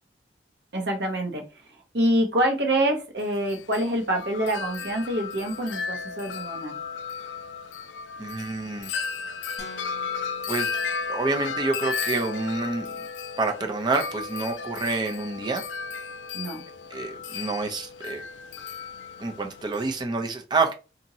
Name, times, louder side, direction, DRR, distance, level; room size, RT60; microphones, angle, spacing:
voice 1, 0.7-1.4 1.9-6.8 16.3-16.6, right 1 dB, 65° right, 2 dB, 0.8 m, -26 dB
Wind chime, 3.2-20.0, left 5 dB, 80° left, 0.3 m, -34 dB
voice 2, 8.2-8.9 10.5-10.8 11.1-12.9 13.4-15.6 16.9-18.2 19.2-20.7, right 3 dB, 25° right, 3 dB, 0.5 m, -28 dB
sound 1, 9.6-11.7, left 1 dB, 40° left, 0.8 m, -47 dB
2.9 x 2.6 x 2.7 m, 0.31 s
head